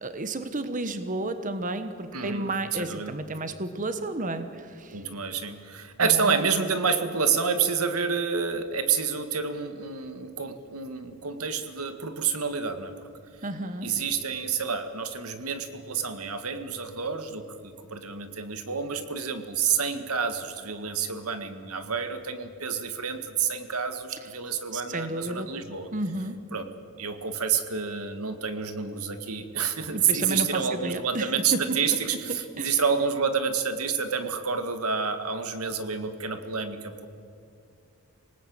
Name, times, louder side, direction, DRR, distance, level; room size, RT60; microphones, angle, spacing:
voice 1, 0.0-5.0 6.0-6.4 13.4-13.9 24.7-25.5 25.9-26.4 29.9-31.8 32.3-32.8, right 2 dB, 35° right, 10 dB, 1.2 m, -32 dB
voice 2, 2.1-3.2 4.9-12.9 13.8-25.9 26.5-26.7 27.0-37.1, right 6 dB, 90° right, 9 dB, 1.8 m, -29 dB
26.5 x 18.5 x 8.7 m, 2.4 s
head